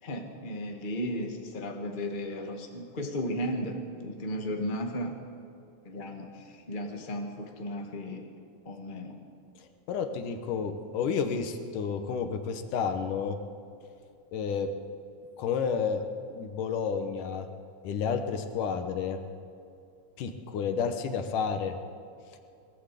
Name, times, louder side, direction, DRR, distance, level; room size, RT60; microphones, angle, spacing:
voice 1, 0.0-5.1 5.8-8.2 8.6-9.2, equal, 20° left, 2 dB, 1.6 m, -35 dB
voice 2, 9.9-13.4 14.3-14.7 15.4-16.0 16.3-17.5 17.8-19.2 20.2-21.7, left 6 dB, 85° left, 7 dB, 2.8 m, -30 dB
21.0 x 15.5 x 8.5 m, 2.5 s
omnidirectional pair, 3.6 m